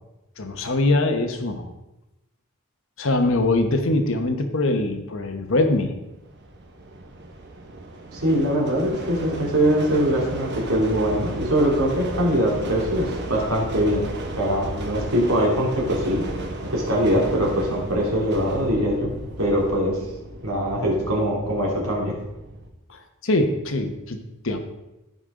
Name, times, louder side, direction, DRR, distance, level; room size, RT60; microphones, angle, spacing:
voice 1, 0.4-1.7 3.0-5.9 22.9-24.2 24.4-24.6, left 2 dB, 65° left, 6 dB, 1.1 m, -22 dB
sound 1, 6.2-22.7, right 1 dB, 55° right, 1.3 m, -34 dB
voice 2, 8.1-14.1 14.4-16.2 16.7-19.1 19.4-20.0 20.4-22.1, equal, 85° right, -3 dB, 3.0 m, -22 dB
14.5 x 5.4 x 3.8 m, 0.96 s
head